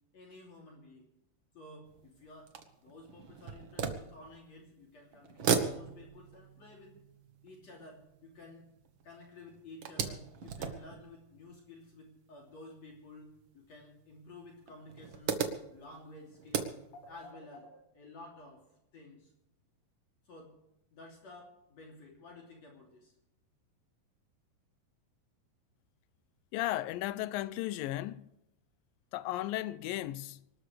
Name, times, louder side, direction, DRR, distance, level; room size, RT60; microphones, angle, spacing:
voice 1, 0.1-1.1 1.5-6.9 7.4-8.7 9.0-18.6 18.9-19.3 20.2-20.6 20.9-23.2, left 2 dB, 50° left, 4.1 m, -53 dB
sound 1, 1.8-4.8 5.1-9.1 9.4-12.1 12.9-13.0 13.4-13.5 14.6-17.3, right 6 dB, 60° right, 1.3 m, -37 dB
voice 2, 26.5-28.3 29.1-30.4, left 15 dB, 80° left, 2.3 m, -35 dB
24.5 x 13.0 x 3.4 m
omnidirectional pair, 4.1 m